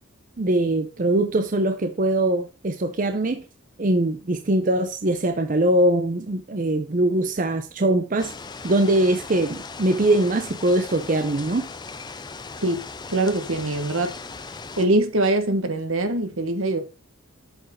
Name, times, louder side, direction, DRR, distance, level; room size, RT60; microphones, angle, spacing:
voice 1, 0.4-3.4 3.8-8.3 8.6-11.7, right 1 dB, 40° right, 0.6 m, -22 dB
sound 1, 8.2-14.9, left 4 dB, 20° left, 0.4 m, -38 dB
voice 2, 13.1-14.2 14.8-16.8, right 2 dB, 75° right, 1.4 m, -23 dB
7.8 x 4.5 x 5.6 m
head